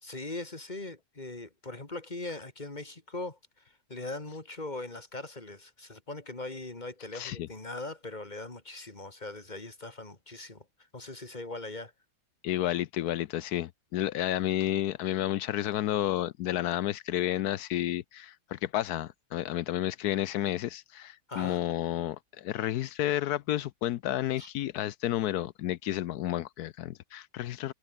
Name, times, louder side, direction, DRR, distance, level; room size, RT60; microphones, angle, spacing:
voice 1, 0.0-3.4 3.9-10.6 10.9-11.9 21.3-21.6 24.4-24.5, left 2 dB, 25° left, 2.7 m, -40 dB
voice 2, 7.1-7.5 12.4-27.7, left 13 dB, 75° left, 1.1 m, -31 dB
omnidirectional pair, 1.8 m